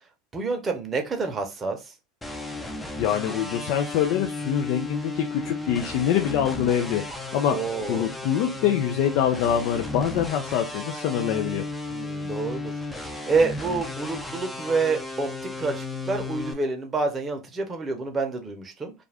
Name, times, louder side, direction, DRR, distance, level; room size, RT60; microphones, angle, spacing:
voice 1, 0.3-1.9 7.5-8.1 11.9-12.7 13.3-15.3 15.6-18.9, right 4 dB, 25° right, 0.8 m, -28 dB
sound 1, 2.2-16.5, left 2 dB, 10° left, 0.6 m, -34 dB
voice 2, 3.0-7.6 7.9-11.7, left 9 dB, 60° left, 0.5 m, -25 dB
2.4 x 2.3 x 3.3 m
hypercardioid pair, 90°, 0 cm